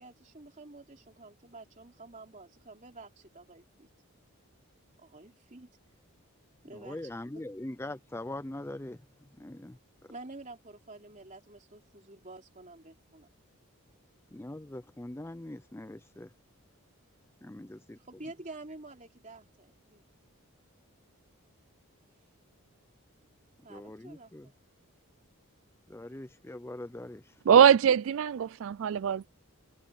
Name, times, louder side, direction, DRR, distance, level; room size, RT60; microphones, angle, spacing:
voice 1, 0.0-3.9 5.0-5.7 6.6-7.0 10.1-13.3 18.0-20.0 23.6-24.5, right 2 dB, 35° right, 3.2 m, -49 dB
voice 2, 6.7-9.8 14.3-16.3 17.4-18.0 23.7-24.5 25.9-27.4, left 1 dB, 10° left, 0.5 m, -42 dB
voice 3, 27.5-29.3, right 8 dB, 60° right, 0.3 m, -22 dB
head